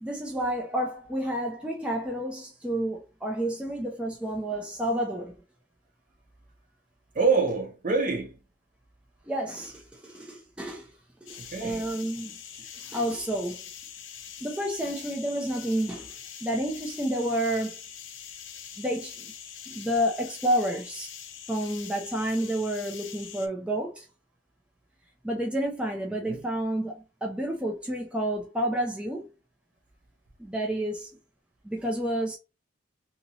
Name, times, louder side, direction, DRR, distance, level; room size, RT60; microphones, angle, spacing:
voice 1, 0.0-5.4 9.3-10.9 11.2-13.6 14.4-16.1 16.4-17.8 18.8-19.3 19.7-21.1 21.5-24.1 25.2-29.3 30.4-31.1 31.6-32.4, right 1 dB, 5° right, 0.4 m, -30 dB
voice 2, 7.1-8.4 11.4-11.9 26.1-26.4, right 4 dB, 45° right, 0.7 m, -26 dB
sound 1, 11.3-23.5, left 8 dB, 90° left, 0.6 m, -44 dB
2.9 x 2.9 x 2.6 m
head